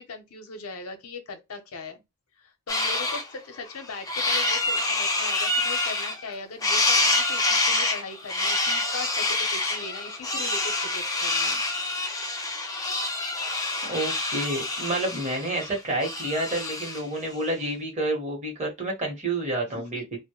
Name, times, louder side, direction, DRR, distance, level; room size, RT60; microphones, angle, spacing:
voice 1, 0.0-2.0 2.4-11.6 19.6-20.0, left 4 dB, 75° left, 0.7 m, -39 dB
sound 1, 2.7-3.2 3.7-6.3 6.6-17.1, left 2 dB, 15° left, 0.5 m, -27 dB
voice 2, 13.8-20.2, right 1 dB, 30° right, 0.9 m, -29 dB
2.1 x 2.1 x 2.9 m
head